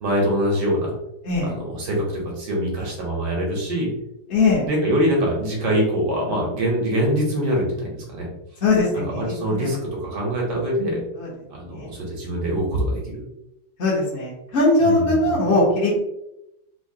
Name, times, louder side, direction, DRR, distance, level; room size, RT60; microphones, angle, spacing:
voice 1, 0.0-0.9 1.4-3.9 4.7-8.3 8.9-11.0 11.5-13.2 14.8-15.1, equal, 70° right, -2 dB, 1.6 m, -24 dB
voice 2, 4.3-4.7 8.6-9.7 11.1-11.3 11.7-11.9 13.8-15.9, left 2 dB, 45° left, -6 dB, 1.0 m, -20 dB
3.8 x 2.7 x 2.7 m, 0.86 s
omnidirectional pair, 2.0 m